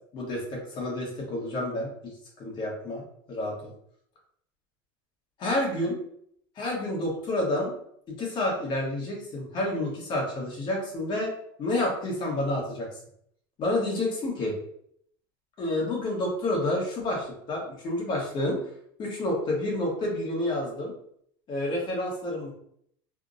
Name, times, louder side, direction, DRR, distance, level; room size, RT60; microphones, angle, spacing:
voice 1, 0.1-1.9 2.4-3.0 3.3-3.7 5.4-6.0 6.6-7.7 8.2-11.3 11.6-12.9 13.6-14.5 15.6-18.6 19.0-20.9 21.5-22.5, left 1 dB, 35° left, -2 dB, 1.1 m, -29 dB
3.3 x 2.0 x 2.5 m, 0.68 s
supercardioid pair, 130°, 13 cm